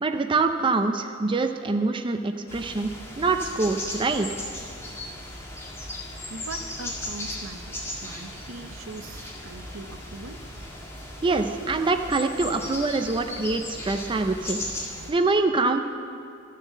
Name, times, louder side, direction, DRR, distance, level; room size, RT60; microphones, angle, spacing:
voice 1, 0.0-2.9 3.2-4.3 11.2-14.6 15.1-15.8, right 3 dB, 25° right, 6 dB, 0.5 m, -24 dB
sound 1, 2.5-15.1, left 1 dB, 15° left, 1.9 m, -37 dB
voice 2, 6.3-10.5, right 3 dB, 80° right, 8 dB, 0.7 m, -41 dB
13.5 x 6.6 x 7.4 m, 2.6 s
head